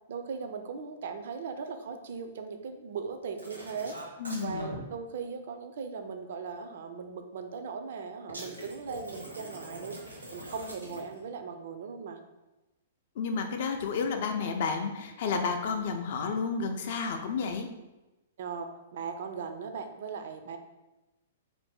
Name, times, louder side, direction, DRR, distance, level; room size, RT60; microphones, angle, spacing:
voice 1, 0.1-10.0 10.3-12.2 18.4-20.6, right 5 dB, 55° right, 6 dB, 0.3 m, -38 dB
sound 1, 3.4-4.8 8.3-11.2 13.8-14.0, right 1 dB, 80° right, 0.7 m, -43 dB
voice 2, 4.2-4.8 13.2-17.7, left 5 dB, 50° left, 5 dB, 0.4 m, -31 dB
2.6 x 2.5 x 3.4 m, 1.0 s
figure-of-eight pair, 110°, 0 cm